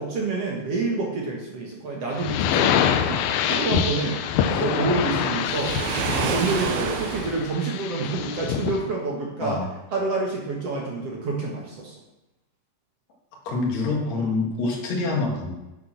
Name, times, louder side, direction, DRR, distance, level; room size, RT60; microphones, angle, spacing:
voice 1, 0.0-4.2 4.5-5.8 6.1-9.6 9.9-11.9, right 3 dB, 50° right, -2 dB, 2.1 m, -28 dB
sound 1, 2.1-8.8, left 9 dB, 80° left, 2.4 m, -25 dB
Waves surf, 5.4-7.5, right 8 dB, 85° right, 2.6 m, -29 dB
voice 2, 13.4-15.5, left 3 dB, 50° left, -1 dB, 3.1 m, -26 dB
9.2 x 6.7 x 6.1 m, 0.98 s
omnidirectional pair, 4.3 m